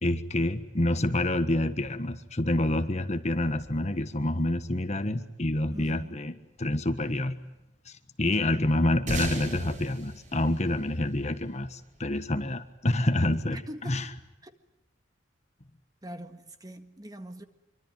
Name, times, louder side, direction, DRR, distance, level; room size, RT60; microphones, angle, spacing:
voice 1, 0.0-7.4 7.8-14.1, left 1 dB, 35° left, 1.4 m, -28 dB
voice 2, 5.7-6.1 8.4-8.6 13.7-14.0 16.0-16.4 16.6-17.4, right 1 dB, 20° right, 1.7 m, -42 dB
sound 1, 9.1-11.8, right 2 dB, 40° right, 5.8 m, -37 dB
26.0 x 24.5 x 9.3 m
head